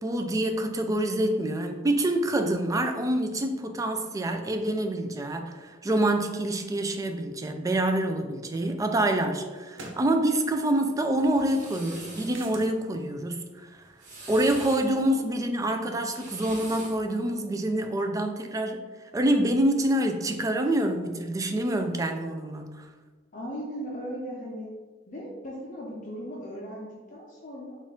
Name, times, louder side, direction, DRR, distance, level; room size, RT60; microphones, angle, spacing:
voice 1, 0.0-13.4 13.7-13.8 14.3-18.8 19.1-22.9, right 1 dB, 20° right, 5 dB, 0.3 m, -26 dB
sound 1, 8.3-8.4 9.7-10.1 12.3-12.7, right 2 dB, 85° right, 0.6 m, -42 dB
sound 2, 11.1-12.4 13.8-14.9 15.9-17.0, right 2 dB, 45° right, 1.2 m, -43 dB
voice 2, 14.9-15.2 23.3-24.7 25.1-27.8, equal, 45° left, -3 dB, 0.6 m, -38 dB
4.2 x 2.4 x 3.7 m, 1.4 s
head